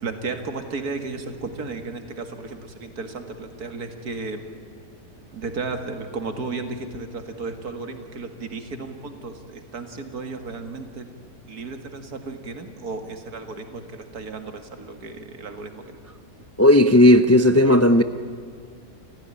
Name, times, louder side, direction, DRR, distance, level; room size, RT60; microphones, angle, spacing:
voice 1, 0.0-4.5 5.3-11.1 11.5-16.0, right 3 dB, 75° right, 7 dB, 2.5 m, -34 dB
voice 2, 16.6-18.0, left 1 dB, 25° left, 10 dB, 0.3 m, -14 dB
29.0 x 15.0 x 10.0 m, 2.3 s
omnidirectional pair, 1.6 m